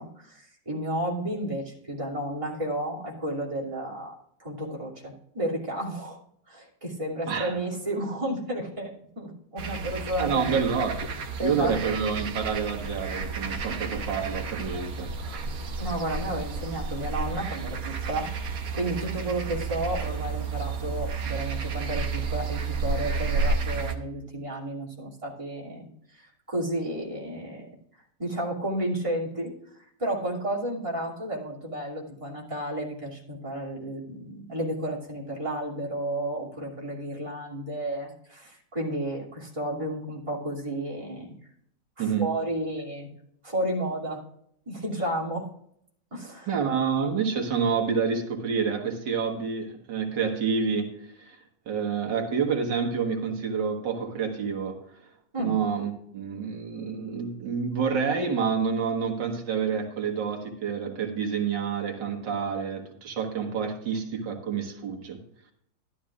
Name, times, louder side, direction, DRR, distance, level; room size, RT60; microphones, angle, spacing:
voice 1, 0.0-4.1 4.4-6.2 6.5-10.6 11.4-11.9 15.8-18.3 18.7-27.7 28.2-29.5 30.0-41.3 42.0-43.1 43.4-44.2 44.7-45.5 46.1-46.5 55.3-55.6, right 1 dB, 15° right, -4 dB, 2.8 m, -32 dB
sound 1, 9.6-24.0, right 4 dB, 60° right, 1.4 m, -31 dB
voice 2, 10.2-11.0 11.4-15.4 42.0-42.3 46.5-51.4 51.7-54.8 55.4-65.2, right 6 dB, 90° right, 2 dB, 2.1 m, -28 dB
12.5 x 12.0 x 2.4 m, 0.70 s
omnidirectional pair, 1.9 m